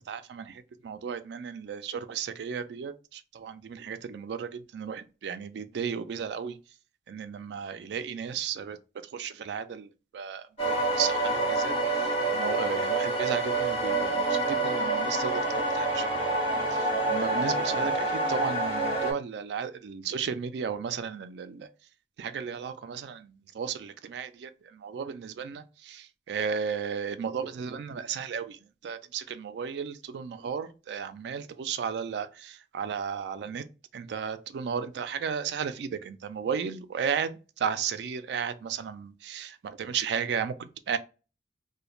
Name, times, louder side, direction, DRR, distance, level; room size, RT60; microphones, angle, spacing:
voice 1, 0.1-6.6 7.1-8.8 9.1-11.7 12.3-16.1 16.7-21.7 22.2-28.6 28.8-33.6 33.9-41.0, right 7 dB, 65° right, 0.3 m, -34 dB
sound 1, 10.6-19.1, right 2 dB, 35° left, 1.1 m, -27 dB
2.4 x 2.1 x 2.9 m
head